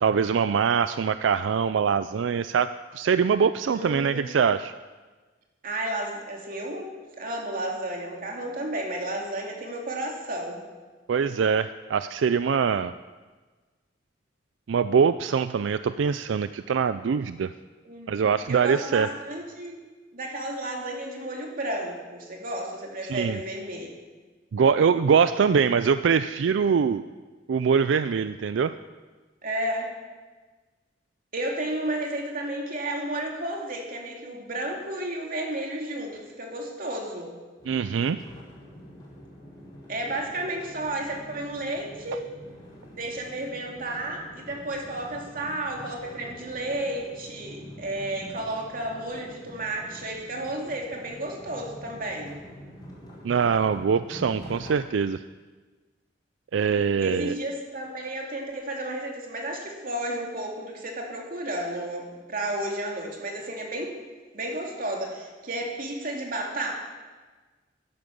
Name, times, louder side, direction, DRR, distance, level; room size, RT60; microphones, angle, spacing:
voice 1, 0.0-2.7 2.9-4.7 11.1-12.9 14.7-17.5 18.1-19.1 23.1-23.4 24.5-27.0 27.5-28.7 37.7-38.2 53.2-55.2 56.5-57.3, right 6 dB, 90° right, 13 dB, 0.4 m, -23 dB
voice 2, 3.7-4.4 5.6-6.9 7.1-10.6 17.8-18.2 18.5-19.8 20.1-23.9 29.4-29.9 31.3-37.3 39.9-42.3 43.0-52.4 57.0-64.0 64.3-66.7, right 1 dB, 50° right, 0 dB, 2.5 m, -32 dB
sound 1, 37.6-54.7, equal, 20° left, 5.0 m, -46 dB
11.0 x 11.0 x 6.9 m, 1.3 s
head